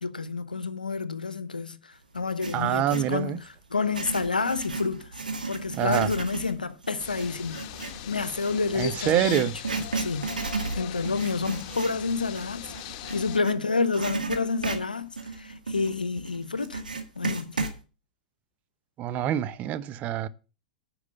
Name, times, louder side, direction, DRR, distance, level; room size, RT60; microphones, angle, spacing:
voice 1, 0.0-5.1 5.5-7.6 8.0-9.5 10.0-10.3 10.7-12.7 13.1-16.8 17.2-17.6, left 4 dB, 85° left, 0.8 m, -29 dB
Writing, 2.2-3.1 3.7-13.6 13.9-17.8, right 3 dB, 85° right, 1.9 m, -34 dB
voice 2, 2.5-3.4 5.7-6.1 8.7-9.5 19.0-20.3, right 11 dB, 35° right, 0.9 m, -26 dB
sound 1, 7.0-13.4, left 12 dB, 50° left, 1.2 m, -40 dB
9.7 x 6.0 x 6.7 m
figure-of-eight pair, 100°, 4 cm